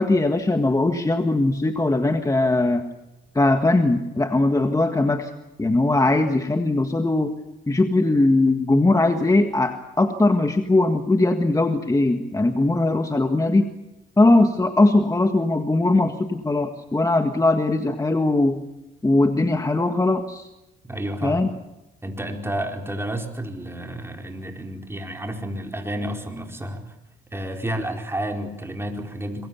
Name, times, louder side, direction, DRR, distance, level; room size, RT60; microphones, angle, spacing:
voice 1, 0.0-2.8 3.4-5.3 5.6-7.3 7.7-13.7 14.2-18.6 19.0-20.5 21.2-21.5, left 2 dB, 15° left, 6 dB, 1.7 m, -20 dB
voice 2, 20.9-21.5 22.0-26.9 27.3-29.5, right 1 dB, 10° right, 3 dB, 4.7 m, -30 dB
26.0 x 23.0 x 7.1 m, 0.95 s
cardioid pair, 90°, 20 cm